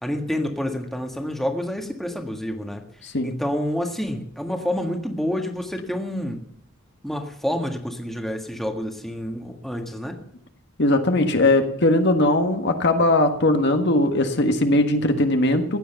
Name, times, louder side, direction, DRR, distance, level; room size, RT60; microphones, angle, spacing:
voice 1, 0.0-2.8 3.2-6.4 7.0-10.2, equal, ahead, 3 dB, 1.7 m, -28 dB
voice 2, 3.0-3.3 10.8-15.8, left 1 dB, 55° left, 5 dB, 1.6 m, -19 dB
16.0 x 10.0 x 6.9 m, 0.65 s
head